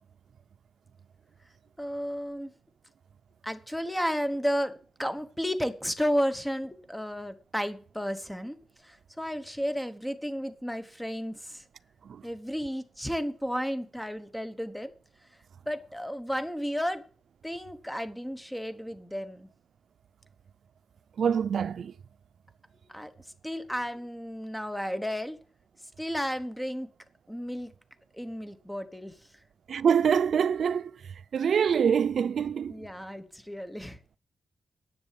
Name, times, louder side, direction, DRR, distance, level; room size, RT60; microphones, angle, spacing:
voice 1, 1.8-2.5 3.4-11.6 12.2-14.9 15.7-17.0 17.4-19.5 22.9-23.1 23.4-25.4 26.0-26.9 27.3-27.7 28.1-29.1 32.7-34.0, equal, 5° left, 1.1 m, -33 dB
voice 2, 21.2-21.9 29.7-32.8, right 7 dB, 65° right, 0.5 m, -25 dB
10.5 x 7.0 x 8.4 m
wide cardioid pair, 180°, 0 cm